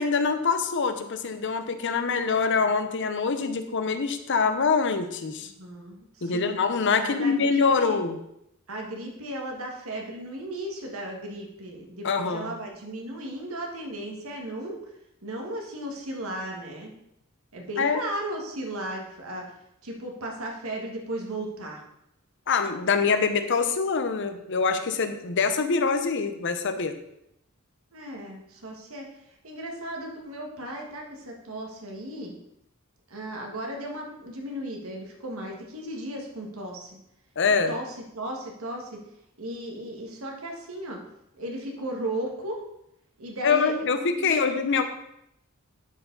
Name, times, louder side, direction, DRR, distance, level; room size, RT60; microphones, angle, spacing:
voice 1, 0.0-5.5 6.2-8.2 12.0-12.5 17.8-18.0 22.5-27.0 37.4-37.7 43.4-44.8, left 5 dB, 60° left, 8 dB, 0.7 m, -24 dB
voice 2, 5.4-6.6 7.0-8.0 8.7-14.8 15.2-16.9 17.5-19.5 19.8-21.8 27.9-29.1 29.4-32.3 33.1-37.0 37.7-39.0 39.4-41.0 41.4-42.6 43.2-44.5, right 1 dB, 90° right, 0 dB, 1.7 m, -35 dB
11.5 x 4.8 x 3.9 m, 0.79 s
head